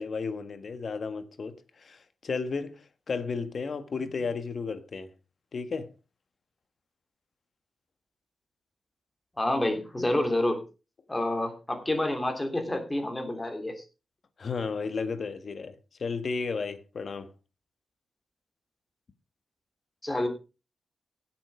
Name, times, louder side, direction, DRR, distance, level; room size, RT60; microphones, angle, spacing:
voice 1, 0.0-5.1 5.5-5.9 14.4-17.3, left 4 dB, 50° left, 1.6 m, -33 dB
voice 2, 9.4-10.6 11.1-13.8 20.0-20.3, left 1 dB, 15° left, 3.2 m, -28 dB
16.5 x 7.7 x 5.0 m
wide cardioid pair, 130°, 0 cm